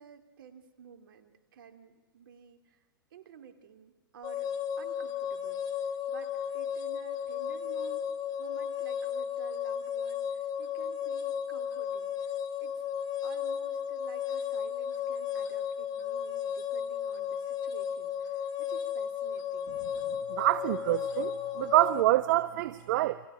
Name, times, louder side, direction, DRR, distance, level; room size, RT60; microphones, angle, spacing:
voice 1, 0.0-2.8 3.1-4.5 4.8-5.6 6.1-8.0 8.4-12.1 12.6-12.7 13.2-19.8, right 8 dB, 70° right, 7 dB, 3.0 m, -52 dB
sound 1, 4.2-22.0, left 8 dB, 35° left, 2.1 m, -34 dB
voice 2, 20.3-23.2, right 16 dB, 55° right, 14 dB, 0.8 m, -26 dB
29.5 x 25.5 x 5.1 m, 1.2 s
hypercardioid pair, 120°, 12 cm